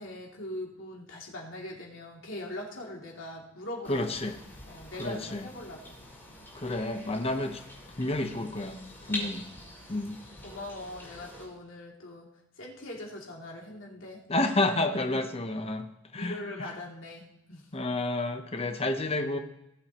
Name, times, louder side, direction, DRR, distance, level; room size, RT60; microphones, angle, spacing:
voice 1, 0.0-4.1 4.7-6.0 9.1-9.4 10.4-12.3 12.6-14.5 15.1-15.2 16.2-17.6, left 1 dB, 75° left, -2 dB, 2.7 m, -41 dB
sound 1, 3.8-11.4, left 1 dB, 10° left, 4.4 m, -45 dB
voice 2, 3.9-4.4 5.0-5.5 6.5-7.6 8.0-8.8 9.1-9.4 9.9-10.2 14.3-15.9 16.1-16.7 17.7-19.4, left 2 dB, 30° left, 6 dB, 0.9 m, -30 dB
18.5 x 7.6 x 3.0 m, 0.85 s
head